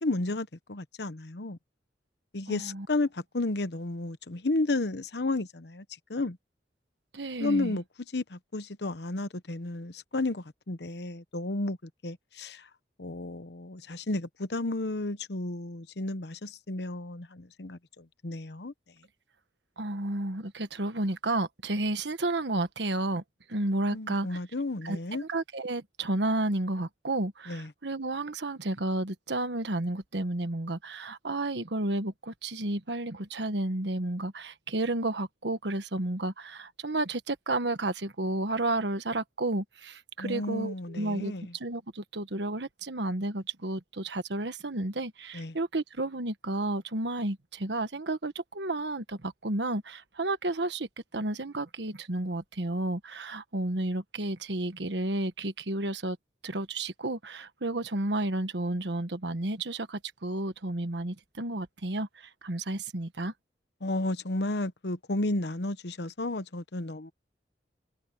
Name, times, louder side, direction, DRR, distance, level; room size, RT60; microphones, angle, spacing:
voice 1, 0.0-1.6 2.3-5.8 6.1-6.4 7.4-7.8 8.1-11.8 12.0-12.6 13.0-18.7 23.9-25.2 27.5-27.7 40.2-41.5 45.3-45.5 63.8-67.1, left 2 dB, 75° left, 1.0 m, -32 dB
voice 2, 2.5-2.9 7.1-7.8 19.8-23.2 23.5-24.4 24.8-56.2 56.4-63.3, right 2 dB, 85° right, 1.4 m, -32 dB
head